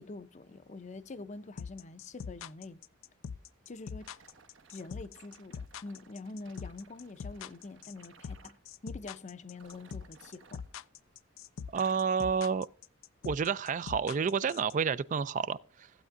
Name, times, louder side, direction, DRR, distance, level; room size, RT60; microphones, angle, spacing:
voice 1, 0.0-2.8 3.7-4.1 4.7-8.6 8.8-10.6, left 3 dB, 35° left, 0.5 m, -45 dB
sound 1, 1.6-14.7, left 6 dB, 85° left, 0.4 m, -42 dB
sound 2, 4.0-8.6 9.5-11.3 11.6-12.2 12.8-13.0 13.7-13.8, right 5 dB, 70° right, 1.1 m, -60 dB
voice 2, 11.7-12.7 13.2-15.9, right 6 dB, 40° right, 0.3 m, -30 dB
15.5 x 8.2 x 2.5 m
head